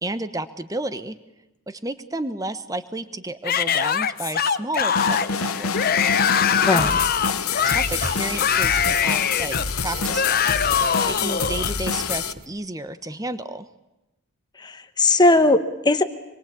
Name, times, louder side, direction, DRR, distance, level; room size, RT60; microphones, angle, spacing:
voice 1, 0.0-1.2 1.7-5.7 6.7-6.9 7.2-13.7, right 2 dB, 15° right, 12 dB, 1.1 m, -32 dB
Yell / Screaming, 3.4-11.7, left 7 dB, 40° left, 0.9 m, -23 dB
sound 1, 5.0-12.3, left 6 dB, 80° left, 1.1 m, -27 dB
sound 2, 5.9-12.4, right 2 dB, 30° right, 1.8 m, -40 dB
voice 2, 6.6-7.0 14.6-16.0, left 2 dB, 20° left, 9 dB, 1.2 m, -18 dB
26.5 x 22.5 x 8.6 m, 0.98 s
head